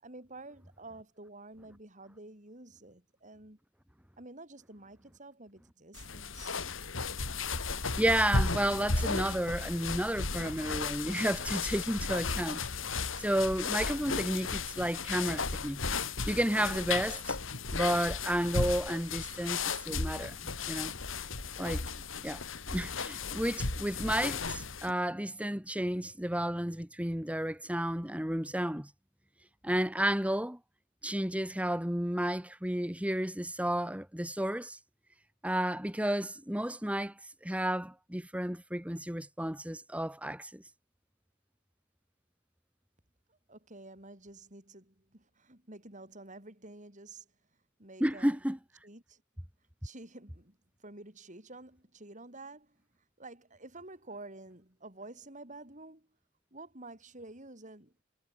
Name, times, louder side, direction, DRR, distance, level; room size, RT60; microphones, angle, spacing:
voice 1, 0.0-3.6 4.2-6.6 43.3-47.3 47.8-48.4 48.8-49.2 49.8-52.8 53.2-56.1 56.5-57.9, right 2 dB, 40° right, 6.8 m, -50 dB
sound 1, 5.9-24.9, left 4 dB, 80° left, 3.0 m, -35 dB
voice 2, 7.7-12.6 13.2-15.8 16.3-17.4 17.7-20.3 20.7-20.9 21.6-21.8 22.2-22.4 22.7-28.9 29.6-30.6 31.0-34.8 35.4-37.1 37.4-40.6 48.0-48.6, right 1 dB, 5° right, 2.4 m, -32 dB
head